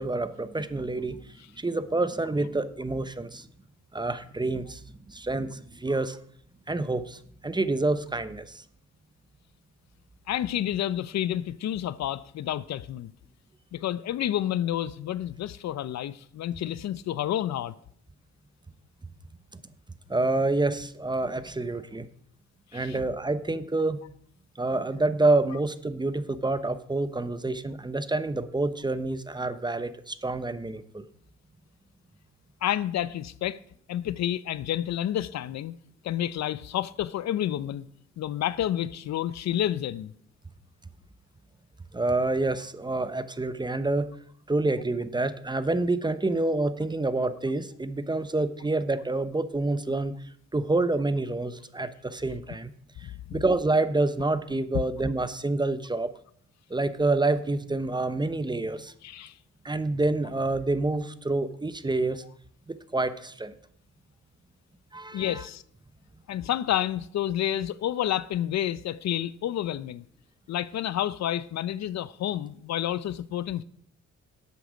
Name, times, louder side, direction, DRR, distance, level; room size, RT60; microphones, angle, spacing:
voice 1, 0.0-3.5 3.9-4.8 5.1-6.2 6.7-8.6 19.5-19.6 20.1-22.1 22.7-24.0 24.6-31.1 41.9-44.1 44.5-50.1 50.5-52.7 53.0-56.1 56.7-58.9 59.6-62.2 62.7-63.5 64.9-65.4, right 2 dB, 15° right, 0.8 m, -28 dB
voice 2, 10.3-13.1 13.7-17.7 22.7-23.0 32.6-33.6 33.9-35.7 36.0-37.9 38.2-40.1 53.0-53.4 59.0-59.3 65.1-65.6 66.3-70.0 70.5-73.6, left 11 dB, 60° left, 0.6 m, -29 dB
12.0 x 8.4 x 5.1 m
cardioid pair, 90°, 30 cm